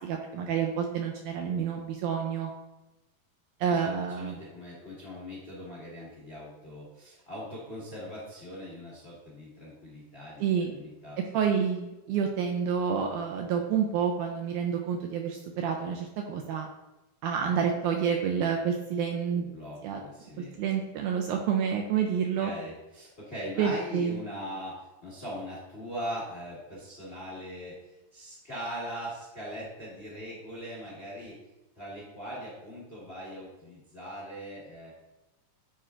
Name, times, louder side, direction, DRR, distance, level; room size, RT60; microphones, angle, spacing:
voice 1, 0.0-2.5 3.6-4.4 10.4-10.7 11.3-16.7 17.2-19.4 19.8-20.0 20.6-22.5 23.6-24.2, right 7 dB, 80° right, 2 dB, 1.8 m, -28 dB
voice 2, 3.7-11.2 19.3-20.6 22.4-31.4 31.7-34.9, equal, 55° left, -7 dB, 0.6 m, -41 dB
9.3 x 4.4 x 2.4 m, 1.0 s
omnidirectional pair, 3.9 m